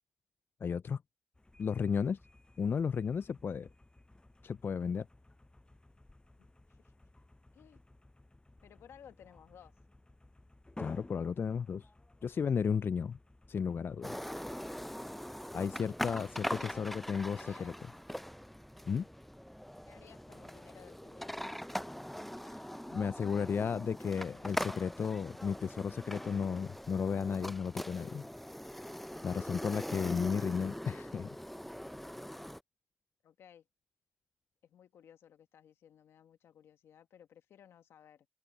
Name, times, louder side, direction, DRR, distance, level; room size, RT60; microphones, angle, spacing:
voice 1, 0.6-1.0 1.6-2.2 2.6-3.7 4.4-5.1 10.8-11.9 12.2-13.2 13.5-14.2 15.5-17.7 18.9-19.1 22.5-22.6 22.9-28.3 29.2-31.4, left 6 dB, 60° left, 0.4 m, -34 dB
sound 1, 1.3-15.2, left 2 dB, 20° left, 7.5 m, -57 dB
voice 2, 6.4-6.9 7.5-7.8 8.6-9.7 16.3-16.9 17.3-17.7 19.9-21.4 33.2-33.7 34.6-38.3, left 9 dB, 85° left, 1.4 m, -58 dB
sound 2, 14.0-32.6, equal, 5° left, 0.5 m, -42 dB
open air
supercardioid pair, 45°, 4 cm